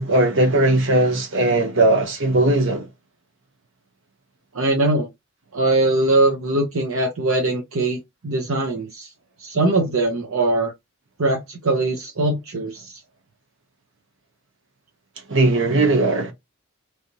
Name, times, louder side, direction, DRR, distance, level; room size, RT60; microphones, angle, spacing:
voice 1, 0.0-2.9 15.3-16.3, right 2 dB, 65° right, 1.3 m, -18 dB
voice 2, 4.5-5.1 5.5-8.0 8.2-9.1 9.4-10.7 11.2-13.0, right 2 dB, 80° right, 0.8 m, -21 dB
3.2 x 2.9 x 2.8 m
head